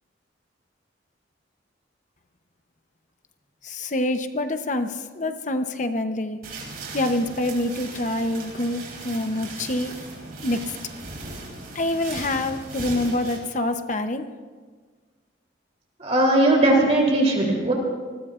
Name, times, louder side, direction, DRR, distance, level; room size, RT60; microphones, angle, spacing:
voice 1, 3.6-6.4 6.9-10.0 10.4-10.8 11.7-14.3, left 1 dB, 40° left, 8 dB, 0.8 m, -26 dB
sound 1, 6.4-13.4, right 3 dB, 50° right, 4.5 m, -38 dB
voice 2, 16.0-17.7, right 1 dB, 35° right, -1 dB, 3.3 m, -19 dB
28.0 x 20.5 x 2.5 m, 1.5 s
head